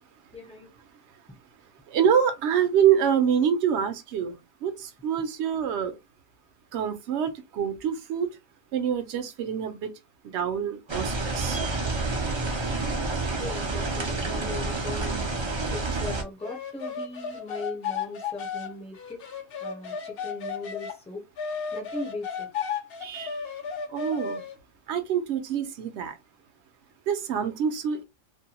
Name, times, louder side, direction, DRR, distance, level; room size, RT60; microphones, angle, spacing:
voice 1, 0.3-0.7 13.4-15.3 15.7-19.2 19.6-21.3 21.7-22.5, left 2 dB, 5° left, 0.6 m, -38 dB
voice 2, 1.9-4.4 4.6-5.9 6.7-8.3 8.7-9.9 10.3-11.6 23.0-23.4 23.9-24.4 24.9-26.2 27.1-28.0, right 8 dB, 65° right, 0.8 m, -26 dB
sound 1, 10.9-16.2, right 3 dB, 40° right, 0.4 m, -29 dB
sound 2, 16.4-21.0 21.4-24.6, left 6 dB, 60° left, 0.7 m, -34 dB
2.6 x 2.2 x 2.8 m
omnidirectional pair, 1.3 m